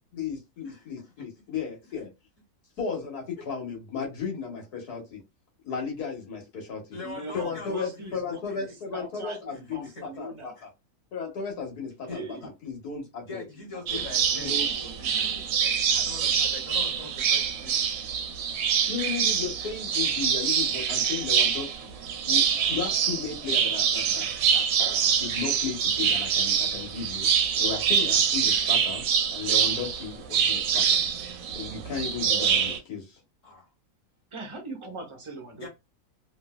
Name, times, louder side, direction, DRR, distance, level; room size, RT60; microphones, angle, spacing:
voice 1, 0.1-2.1 2.8-5.2 5.6-6.8 7.3-10.7 11.1-12.3 12.6-13.5 13.9-14.0 14.4-14.7 18.9-22.0 22.2-24.7 25.2-29.0 29.3-31.0 31.5-33.2, left 6 dB, 85° left, 1.7 m, -35 dB
voice 2, 0.6-1.2 6.9-8.2 8.5-8.7 9.5-9.9 10.6-10.7 12.1-12.5 13.3-17.9 33.4-33.7 35.5-35.7, left 3 dB, 55° left, 1.6 m, -43 dB
voice 3, 7.0-8.7 8.9-10.6 12.0-12.5 14.2-15.5 22.7-22.8 34.3-35.7, right 2 dB, 35° right, 0.5 m, -41 dB
sound 1, 13.9-32.8, right 7 dB, 70° right, 0.9 m, -25 dB
3.2 x 2.7 x 2.2 m
omnidirectional pair, 1.6 m